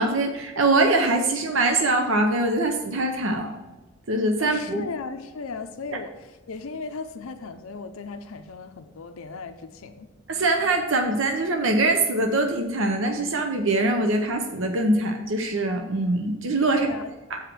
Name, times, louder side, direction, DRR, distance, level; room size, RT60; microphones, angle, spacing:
voice 1, 0.0-3.6 4.1-4.8 10.3-16.9 17.3-17.4, right 2 dB, 65° right, 5 dB, 0.7 m, -23 dB
voice 2, 4.4-10.1 16.7-17.1, left 4 dB, 75° left, 8 dB, 0.5 m, -36 dB
7.2 x 5.0 x 6.0 m, 1.1 s
head